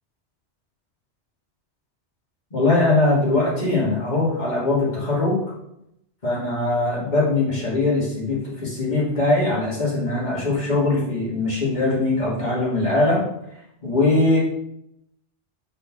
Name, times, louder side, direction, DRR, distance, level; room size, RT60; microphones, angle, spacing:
voice 1, 2.5-5.4 6.2-13.2 13.8-14.4, left 2 dB, 40° left, -7 dB, 2.7 m, -21 dB
5.6 x 4.3 x 6.2 m, 0.80 s
omnidirectional pair, 1.2 m